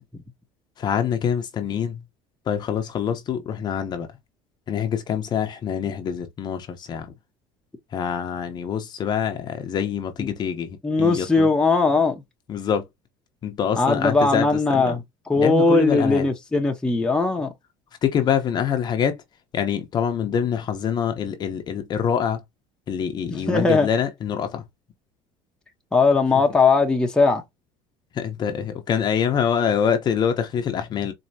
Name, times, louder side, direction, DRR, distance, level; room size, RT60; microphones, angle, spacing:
voice 1, 0.8-2.0 2.5-4.1 4.7-7.1 7.9-11.5 12.5-12.9 13.4-15.0 15.3-16.3 18.0-19.2 19.5-22.4 22.9-24.6 28.1-31.1, left 8 dB, 35° left, 0.7 m, -25 dB
voice 2, 10.8-12.2 13.8-17.5 23.3-23.9 25.9-27.4, left 3 dB, 5° left, 0.8 m, -19 dB
4.3 x 2.7 x 2.7 m
cardioid pair, 140°, 12 cm